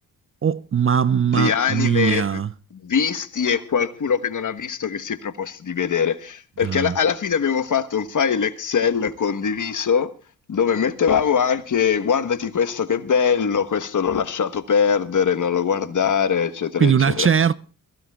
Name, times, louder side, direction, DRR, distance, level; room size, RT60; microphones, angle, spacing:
voice 1, 0.4-2.5 6.6-6.9 16.8-17.5, right 7 dB, 35° right, 0.5 m, -20 dB
voice 2, 1.3-2.2 2.8-10.1 10.5-17.3, left 7 dB, 50° left, 1.4 m, -22 dB
22.5 x 15.5 x 2.4 m
cardioid pair, 60°, 38 cm